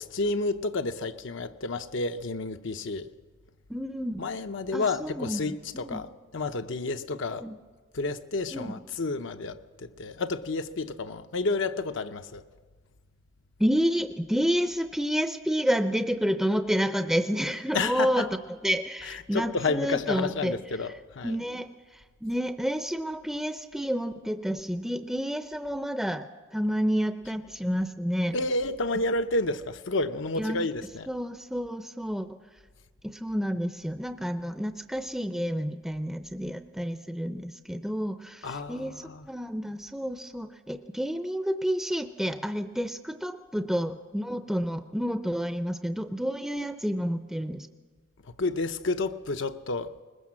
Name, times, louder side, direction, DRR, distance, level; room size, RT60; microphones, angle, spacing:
voice 1, 0.0-3.1 4.2-7.4 7.9-12.4 17.7-18.2 19.3-21.4 28.3-31.1 38.4-39.2 48.4-49.9, left 3 dB, 65° left, 8 dB, 0.7 m, -30 dB
voice 2, 3.7-4.2 4.7-6.0 7.4-7.6 8.5-8.8 13.6-18.3 18.6-20.6 21.2-28.4 30.4-30.7 31.1-32.4 33.0-47.7, equal, ahead, 8 dB, 0.5 m, -30 dB
20.5 x 20.5 x 7.4 m, 1.4 s
head